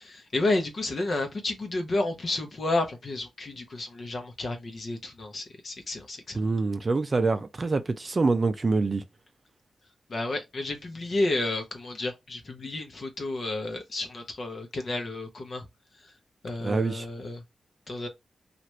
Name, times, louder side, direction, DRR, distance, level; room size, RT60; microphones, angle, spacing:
voice 1, 0.0-6.4 10.1-15.7 16.4-17.4 17.9-18.1, left 2 dB, 50° left, 0.8 m, -31 dB
voice 2, 6.3-9.0 16.6-17.1, right 3 dB, 35° right, 0.4 m, -25 dB
2.9 x 2.4 x 3.1 m
wide cardioid pair, 105°, 0 cm